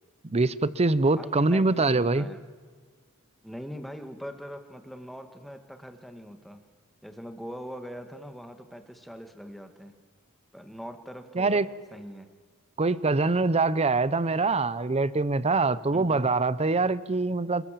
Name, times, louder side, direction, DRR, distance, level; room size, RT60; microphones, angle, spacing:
voice 1, 0.2-2.3 11.3-11.7 12.8-17.7, right 3 dB, 30° right, 17 dB, 0.7 m, -24 dB
voice 2, 1.2-2.4 3.4-6.6 7.0-9.9 10.5-11.7 11.9-12.3 15.9-16.3, equal, ahead, 6 dB, 1.8 m, -42 dB
26.5 x 22.0 x 7.5 m, 1.5 s
head